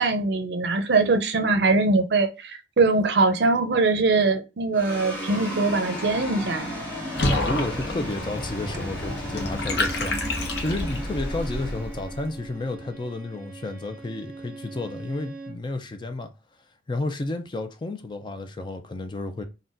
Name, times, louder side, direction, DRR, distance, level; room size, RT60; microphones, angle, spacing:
voice 1, 0.0-6.7, right 3 dB, 70° right, 0.5 m, -22 dB
sound 1, 4.7-13.3, equal, 5° left, 1.4 m, -33 dB
Water / Bathtub (filling or washing), 7.1-11.2, left 2 dB, 65° left, 0.7 m, -29 dB
voice 2, 7.2-16.3 16.9-19.4, left 2 dB, 25° left, 0.4 m, -32 dB
Bowed string instrument, 9.6-15.7, right 3 dB, 10° right, 0.7 m, -42 dB
3.9 x 2.2 x 2.4 m
head